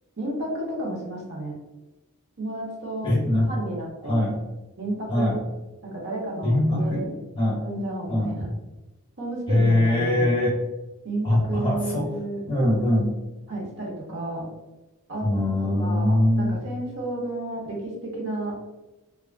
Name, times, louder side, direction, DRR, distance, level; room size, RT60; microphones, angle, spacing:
voice 1, 0.2-1.5 2.4-3.1 3.5-4.2 4.8-5.3 5.8-7.2 7.6-8.5 9.2-10.4 11.0-12.4 13.5-14.5 15.1-15.3 15.6-18.5, right 1 dB, 55° right, -3 dB, 0.8 m, -32 dB
voice 2, 3.0-3.5 4.0-4.4 5.1-5.4 6.4-7.1 7.3-7.6 8.1-8.3 9.5-10.6 11.2-12.1 12.5-13.1 15.2-16.6, left 1 dB, 25° left, -4 dB, 0.7 m, -22 dB
2.9 x 2.4 x 2.4 m, 1.1 s
head